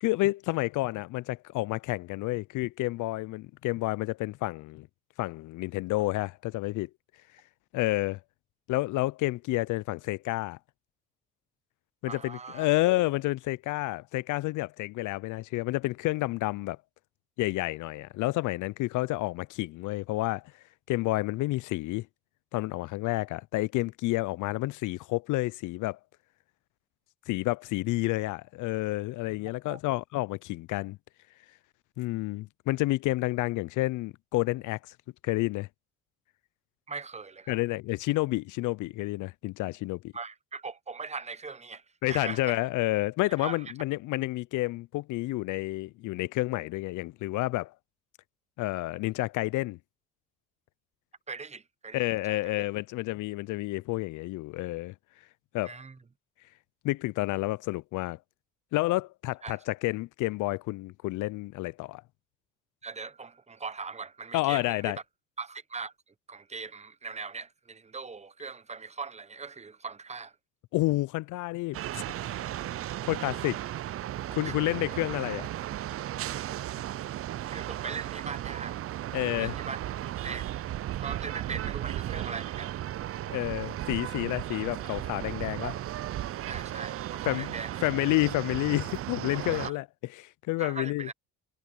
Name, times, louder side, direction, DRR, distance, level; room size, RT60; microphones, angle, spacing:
voice 1, 0.0-4.9 5.2-6.9 7.7-8.2 8.7-10.6 12.0-16.8 17.4-20.4 20.9-22.1 22.5-26.0 27.3-31.0 32.0-34.8 35.2-35.7 37.5-40.1 42.0-47.7 48.6-49.8 51.9-54.9 55.5-55.8 56.8-58.2 58.7-62.0 64.3-65.0 70.7-72.4 73.1-73.6 74.3-75.5 79.1-79.5 83.3-85.8 87.3-87.5 87.8-89.8 90.2-91.1, left 19 dB, 70° left, 0.5 m, -30 dB
voice 2, 12.1-12.7 29.7-29.8 36.9-37.6 40.1-41.8 42.1-42.6 43.4-43.6 51.3-52.0 52.3-52.5 55.6-56.0 59.4-59.6 62.8-65.0 65.4-65.9 66.3-70.3 74.4-74.5 77.5-78.9 79.4-79.8 80.2-80.7 81.0-82.8 86.4-87.9 89.5-89.7 90.6-91.1, right 4 dB, 20° right, 1.0 m, -40 dB
sound 1, 71.7-89.7, right 13 dB, 45° right, 0.5 m, -35 dB
cardioid pair, 95°, 32 cm